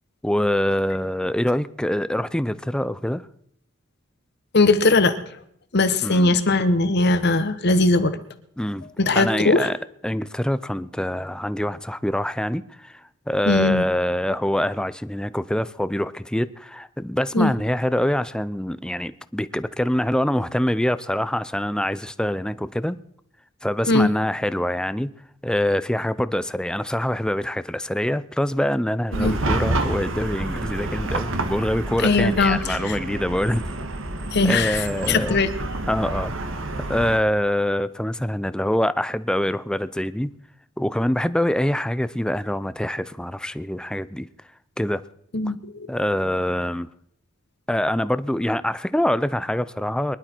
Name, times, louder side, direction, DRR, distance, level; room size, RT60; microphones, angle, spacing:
voice 1, 0.2-3.3 6.0-6.3 8.6-8.9 9.1-9.8 10.0-23.0 23.6-25.1 25.4-33.6 34.4-35.4 35.9-36.3 36.9-40.3 40.8-44.3 44.8-45.0 45.9-46.9 47.7-50.2, left 1 dB, 5° left, 0.5 m, -25 dB
voice 2, 4.5-5.2 5.7-8.2 9.0-9.7 13.5-13.9 17.3-17.5 23.9-24.1 29.1-29.3 32.0-32.9 34.3-35.5 45.3-45.7, left 2 dB, 55° left, 1.1 m, -19 dB
Chatter / Car passing by / Traffic noise roadway noise, 29.1-37.2, right 2 dB, 75° right, 1.6 m, -28 dB
23.0 x 11.5 x 4.5 m
head